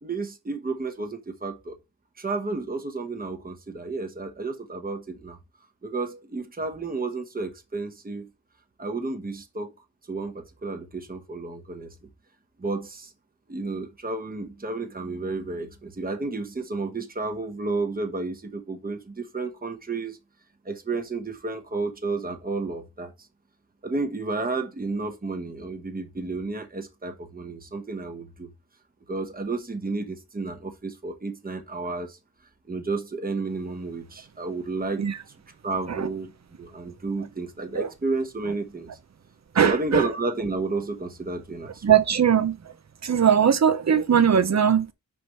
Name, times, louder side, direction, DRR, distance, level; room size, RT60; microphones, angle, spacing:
voice 1, 0.0-1.8 2.2-5.4 5.8-8.3 8.8-9.7 10.1-11.9 12.6-13.1 13.5-20.2 20.6-23.1 23.8-28.5 29.1-32.2 32.7-35.1 35.6-36.3 36.6-38.9 39.6-42.0, right 3 dB, 25° right, 1.1 m, -31 dB
voice 2, 39.5-40.0 41.8-42.6 43.0-44.9, right 8 dB, 50° right, 0.7 m, -20 dB
5.1 x 4.6 x 5.4 m
wide cardioid pair, 100°, 36 cm